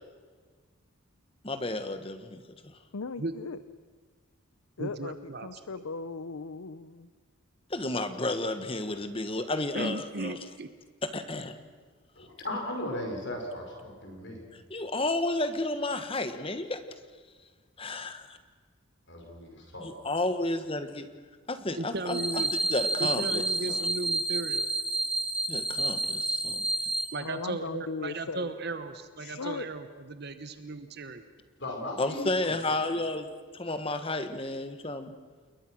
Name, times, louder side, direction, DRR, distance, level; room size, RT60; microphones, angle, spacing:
voice 1, 1.4-2.4 7.7-10.4 11.0-11.6 14.7-16.8 17.8-18.4 19.8-21.1 21.5-22.2 22.7-23.4 23.7-23.8 25.5-26.7 32.0-33.3 33.5-35.1, left 2 dB, 25° left, 9 dB, 1.3 m, -32 dB
voice 2, 2.9-3.6 4.8-5.2 5.4-7.1 27.2-28.5 29.2-29.7, left 4 dB, 75° left, 13 dB, 0.7 m, -37 dB
voice 3, 4.8-5.6 9.7-10.7 21.8-22.5 23.0-24.7 27.1-31.2, right 2 dB, 50° right, 10 dB, 1.0 m, -36 dB
voice 4, 12.2-14.5 19.1-20.0 31.6-32.3, left 1 dB, 55° left, 3 dB, 5.3 m, -37 dB
sound 1, 22.1-27.1, right 2 dB, 5° right, 1.3 m, -29 dB
28.5 x 22.0 x 6.3 m, 1.6 s
head